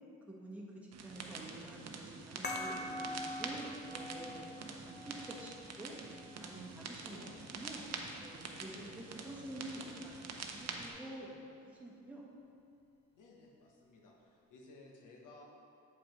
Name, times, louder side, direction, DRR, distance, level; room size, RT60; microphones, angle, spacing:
voice 1, 0.3-6.0 6.4-12.2, right 1 dB, 5° right, -5 dB, 1.1 m, -49 dB
sound 1, 0.9-10.9, right 4 dB, 55° right, 0.7 m, -46 dB
sound 2, 2.4-7.5, left 1 dB, 35° left, 0.8 m, -45 dB
voice 2, 7.1-7.6 8.7-9.6 13.1-15.4, left 2 dB, 80° left, -1 dB, 1.1 m, -57 dB
7.1 x 5.0 x 3.0 m, 2.6 s
cardioid pair, 75°, 31 cm